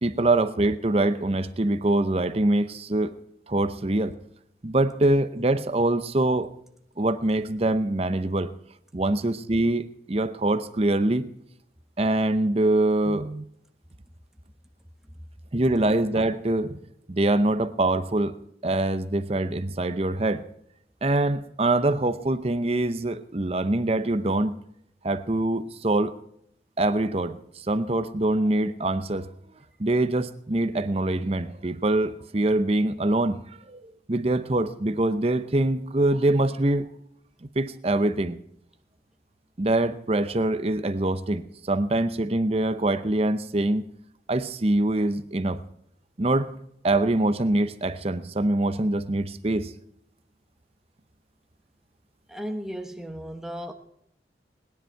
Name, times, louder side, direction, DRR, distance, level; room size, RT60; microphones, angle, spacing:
voice 1, 0.0-3.2 3.5-4.1 4.6-6.5 7.0-8.5 8.9-11.3 12.0-13.4 15.5-16.8 17.1-18.4 18.6-20.4 21.0-24.6 25.0-26.2 26.8-29.3 29.8-36.9 37.6-38.4 39.6-43.8 44.3-45.6 46.2-46.5 46.8-49.7, right 2 dB, 35° right, 11 dB, 0.7 m, -24 dB
voice 2, 52.3-53.7, equal, 5° right, 5 dB, 1.1 m, -35 dB
20.5 x 10.5 x 4.6 m, 0.74 s
head